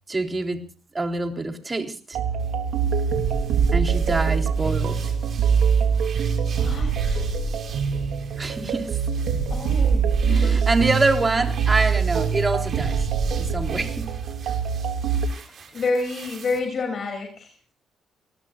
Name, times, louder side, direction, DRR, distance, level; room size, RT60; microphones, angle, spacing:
voice 1, 0.1-0.6 0.9-2.2 3.7-5.1 8.4-9.0 10.3-13.1 13.3-14.1, right 3 dB, 25° right, 3.7 m, -25 dB
sound 1, 2.1-15.3, right 6 dB, 80° right, 3.0 m, -23 dB
sound 2, 2.4-16.6, right 6 dB, 55° right, 5.3 m, -45 dB
voice 2, 6.4-7.3 9.5-10.6 15.3-17.7, left 3 dB, 50° left, 6.2 m, -30 dB
28.5 x 20.5 x 2.5 m
cardioid pair, 80°, 0 cm